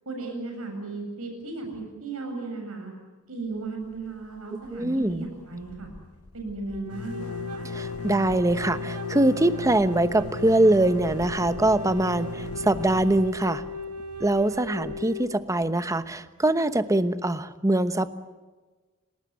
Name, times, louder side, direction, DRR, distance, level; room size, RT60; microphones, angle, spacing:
voice 1, 0.1-2.9 3.3-5.9 6.3-7.7, right 3 dB, 70° right, 3 dB, 7.7 m, -35 dB
sound 1, 3.8-4.4 4.6-4.8 5.0-15.7, left 3 dB, 75° left, 0.9 m, -39 dB
voice 2, 4.7-5.3 7.6-13.6 14.2-18.1, right 1 dB, 15° right, 11 dB, 1.0 m, -23 dB
Wind instrument woodwind instrument, 6.7-15.3, left 1 dB, 90° right, 2.3 m, -37 dB
29.5 x 19.0 x 9.6 m, 1.3 s
head